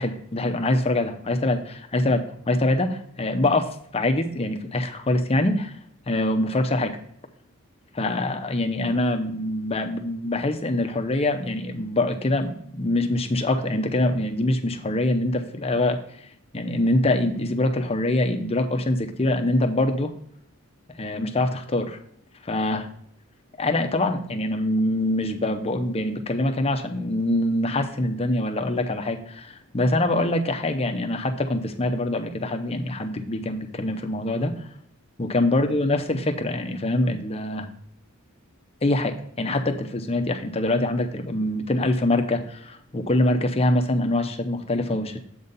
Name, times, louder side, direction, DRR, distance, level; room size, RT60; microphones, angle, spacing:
voice 1, 0.0-5.8 6.1-7.0 7.9-16.3 16.5-20.1 21.0-22.0 22.4-22.9 23.6-34.7 35.2-37.7 38.8-45.2, left 1 dB, 25° left, 5 dB, 0.6 m, -24 dB
7.9 x 4.0 x 5.2 m, 0.66 s
head